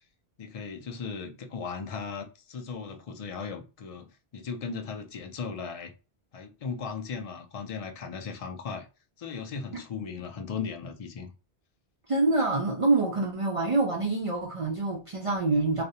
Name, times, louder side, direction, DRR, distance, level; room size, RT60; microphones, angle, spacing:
voice 1, 0.4-5.9 6.3-8.9 9.2-11.3, left 5 dB, 55° left, 0.4 m, -37 dB
voice 2, 12.1-15.8, right 3 dB, 65° right, 0.3 m, -26 dB
2.4 x 2.0 x 2.7 m
omnidirectional pair, 1.1 m